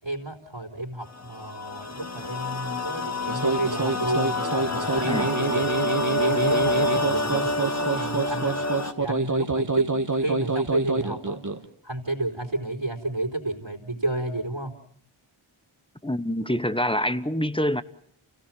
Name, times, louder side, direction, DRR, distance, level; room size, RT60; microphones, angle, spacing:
voice 1, 0.0-5.6 6.2-8.6 9.0-9.9 10.2-11.4 11.8-14.7, right 2 dB, 60° right, 3.9 m, -31 dB
sound 1, 1.1-8.9, left 2 dB, 30° left, 1.6 m, -28 dB
sound 2, 3.2-11.6, right 3 dB, 35° right, 1.6 m, -27 dB
voice 2, 16.0-17.8, left 1 dB, 10° left, 1.0 m, -25 dB
29.0 x 16.5 x 7.5 m
wide cardioid pair, 50°, 50 cm